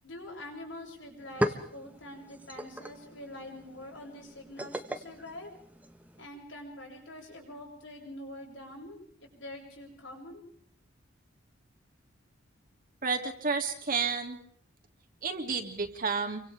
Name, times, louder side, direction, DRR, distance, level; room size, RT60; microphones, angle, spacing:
voice 1, 0.0-5.5 6.2-10.4, left 1 dB, 85° left, 1 dB, 8.0 m, -45 dB
sound 1, 0.7-0.8 1.1-6.3, equal, 10° right, 1.5 m, -38 dB
voice 2, 13.0-14.4 15.2-16.4, right 5 dB, 50° right, 3 dB, 2.9 m, -31 dB
29.0 x 24.5 x 3.6 m, 0.63 s
head